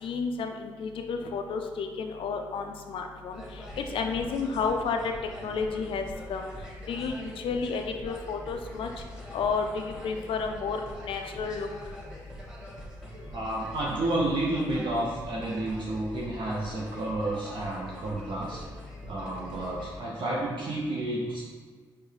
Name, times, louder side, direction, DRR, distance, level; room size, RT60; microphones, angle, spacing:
voice 1, 0.0-3.4 3.8-5.1 5.4-6.0 6.3-6.5 6.9-8.9 9.3-10.8 11.0-11.7, left 5 dB, 60° left, 4 dB, 0.3 m, -31 dB
sound 1, 3.3-20.0, equal, 5° right, 1.5 m, -43 dB
voice 2, 13.3-18.6 19.0-21.4, right 1 dB, 55° right, -4 dB, 0.6 m, -31 dB
4.5 x 2.1 x 3.2 m, 1.5 s
hypercardioid pair, 45°, 10 cm